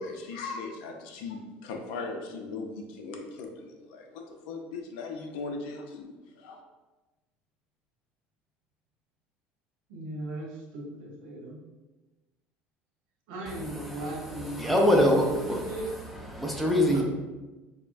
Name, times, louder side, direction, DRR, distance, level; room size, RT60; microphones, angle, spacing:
voice 1, 0.0-6.6, left 3 dB, 90° left, 0.6 m, -38 dB
voice 2, 9.9-11.6 13.3-15.9 16.9-17.0, right 2 dB, 85° right, 1.1 m, -38 dB
voice 3, 14.5-15.6 16.3-17.0, left 1 dB, ahead, 0.5 m, -23 dB
5.4 x 2.1 x 2.5 m
cardioid pair, 150°, 4 cm